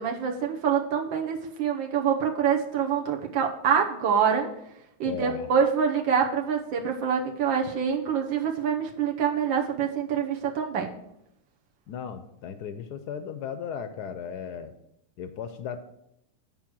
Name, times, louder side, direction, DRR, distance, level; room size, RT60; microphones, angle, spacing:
voice 1, 0.0-4.5 5.0-10.9, right 7 dB, 75° right, 1 dB, 1.6 m, -26 dB
voice 2, 5.0-5.5 11.9-14.7 15.2-15.8, left 7 dB, 70° left, 9 dB, 1.0 m, -36 dB
9.2 x 4.7 x 6.1 m, 0.80 s
omnidirectional pair, 2.2 m